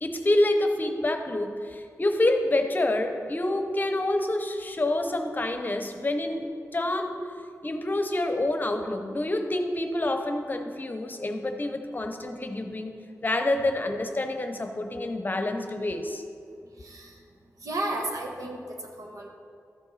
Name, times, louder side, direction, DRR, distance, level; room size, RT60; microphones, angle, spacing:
voice 1, 0.0-7.3 7.6-16.2, left 1 dB, 35° left, 6 dB, 0.8 m, -27 dB
voice 2, 16.7-17.2 17.6-19.3, right 1 dB, 90° right, 0 dB, 1.4 m, -33 dB
13.5 x 7.0 x 4.1 m, 2.3 s
wide cardioid pair, 95°, 6 cm